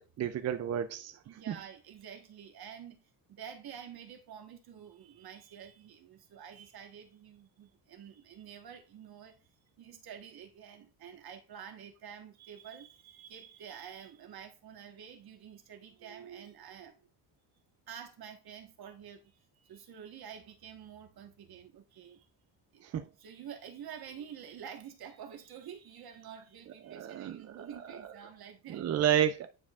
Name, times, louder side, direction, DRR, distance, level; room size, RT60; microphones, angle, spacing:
voice 1, 0.2-1.5 22.8-23.1 26.8-27.7 28.7-29.5, right 10 dB, 40° right, 0.4 m, -31 dB
voice 2, 1.2-3.0 3.3-9.5 9.8-17.0 17.9-22.3 22.7-22.9 23.2-28.8, right 8 dB, 55° right, 1.4 m, -48 dB
9.7 x 4.6 x 2.4 m
cardioid pair, 140°, 44 cm